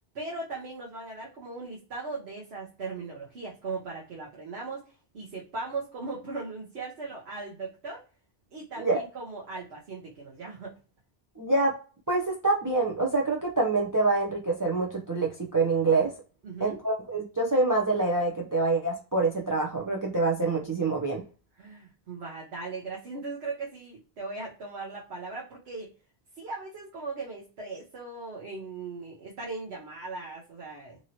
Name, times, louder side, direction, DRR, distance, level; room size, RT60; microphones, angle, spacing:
voice 1, 0.1-8.0 8.5-10.8 16.4-16.8 21.6-25.9 26.4-31.0, right 3 dB, 80° right, -3 dB, 1.1 m, -38 dB
voice 2, 11.4-11.7 12.1-16.1 16.6-21.2, right 3 dB, 30° right, 0 dB, 0.4 m, -26 dB
2.9 x 2.7 x 2.7 m, 0.35 s
omnidirectional pair, 1.1 m